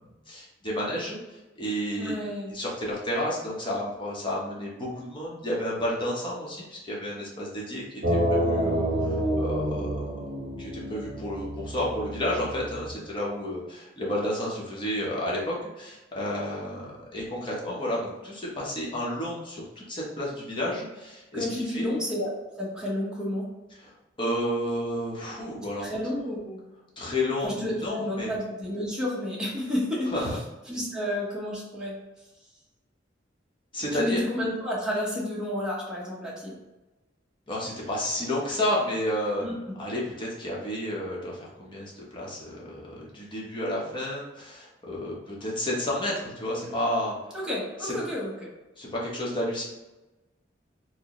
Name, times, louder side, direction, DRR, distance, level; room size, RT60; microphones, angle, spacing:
voice 1, 0.3-2.2 2.5-10.1 10.6-21.9 23.8-23.9 24.2-25.9 27.0-28.3 30.1-30.4 33.7-34.2 37.5-39.4 39.8-47.1 47.8-47.9 48.8-49.6, left 1 dB, 25° left, -4 dB, 1.0 m, -31 dB
voice 2, 2.0-2.5 21.3-23.5 25.8-26.7 27.4-30.4 30.7-31.9 33.9-36.6 39.4-39.7 47.3-48.5, left 1 dB, 5° right, -6 dB, 1.0 m, -31 dB
sound 1, 8.0-12.9, equal, 65° right, 0.7 m, -28 dB
4.4 x 2.2 x 3.0 m, 1.1 s
head